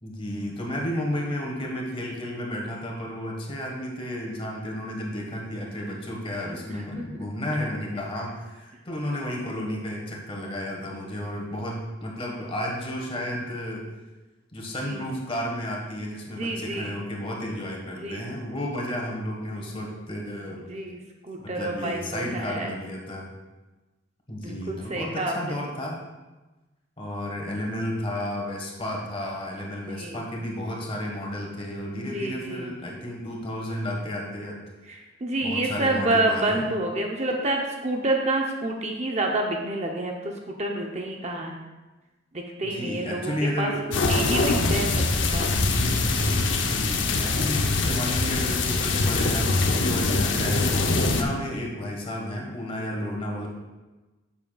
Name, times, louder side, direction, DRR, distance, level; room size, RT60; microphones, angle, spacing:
voice 1, 0.0-13.9 14.5-20.6 21.4-23.3 24.3-26.0 27.0-34.6 35.4-36.6 42.6-43.9 46.5-53.5, left 1 dB, 30° left, -1 dB, 1.5 m, -32 dB
voice 2, 6.7-7.1 14.8-15.0 16.4-16.9 18.0-18.3 20.7-22.7 24.4-25.6 29.9-30.2 31.9-32.7 34.9-41.6 42.3-43.3 43.6-45.5 51.2-51.3, right 2 dB, 35° right, 1 dB, 0.7 m, -29 dB
sound 1, 43.9-51.2, left 3 dB, 65° left, 0.7 m, -23 dB
10.5 x 7.1 x 2.3 m, 1.1 s
head